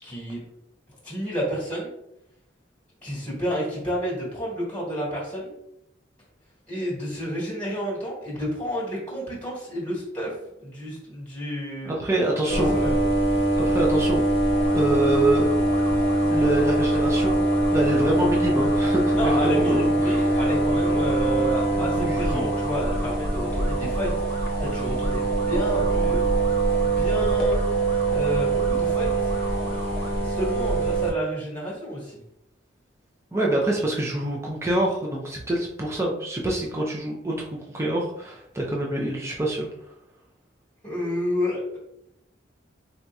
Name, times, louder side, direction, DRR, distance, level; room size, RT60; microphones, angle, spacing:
voice 1, 0.0-0.4 1.0-1.9 3.0-5.5 6.7-10.3 10.6-11.9 12.7-13.0 19.2-24.1 24.6-26.2 26.8-27.6 28.1-29.3 30.2-32.2 40.8-41.8, equal, 15° left, -8 dB, 1.4 m, -30 dB
voice 2, 11.8-12.8 13.6-14.2 14.7-15.5 16.3-17.4 17.7-20.4 21.8-22.5 33.3-39.7, right 1 dB, 15° right, -2 dB, 0.4 m, -26 dB
sound 1, 12.5-31.1, right 2 dB, 50° left, 0.8 m, -23 dB
sound 2, 14.5-30.1, equal, 75° right, 0.9 m, -40 dB
4.0 x 2.7 x 2.3 m, 0.79 s
head